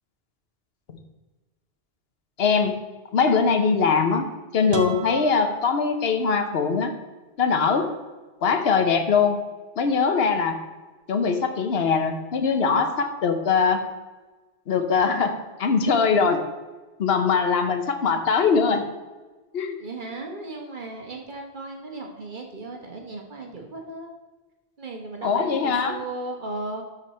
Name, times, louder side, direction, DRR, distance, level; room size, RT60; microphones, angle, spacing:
voice 1, 2.4-2.8 3.1-4.3 4.5-6.9 7.4-7.9 8.4-9.4 9.8-10.6 11.1-13.8 14.7-16.4 17.0-18.8 19.5-19.8 25.2-26.0, left 5 dB, 75° left, 7 dB, 1.1 m, -22 dB
sound 1, 4.7-6.6, right 2 dB, 30° right, 0.7 m, -37 dB
voice 2, 19.8-24.1 24.8-26.8, right 2 dB, 50° right, 2 dB, 1.4 m, -36 dB
12.5 x 4.2 x 4.3 m, 1.2 s
omnidirectional pair, 1.0 m